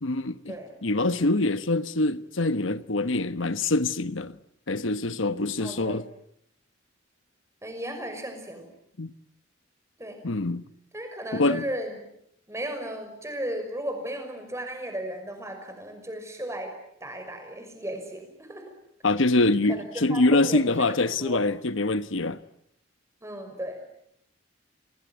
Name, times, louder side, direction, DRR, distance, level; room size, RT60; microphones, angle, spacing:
voice 1, 0.0-0.5 0.8-4.4 4.7-6.0 9.0-9.1 10.2-10.6 11.3-11.6 19.0-22.4, left 2 dB, 80° left, 1.1 m, -24 dB
voice 2, 5.6-6.0 7.6-8.7 10.0-10.2 10.9-12.0 12.5-16.7 17.0-18.7 19.7-21.4 23.2-23.8, right 1 dB, 15° right, 6.0 m, -35 dB
27.5 x 20.0 x 9.4 m
head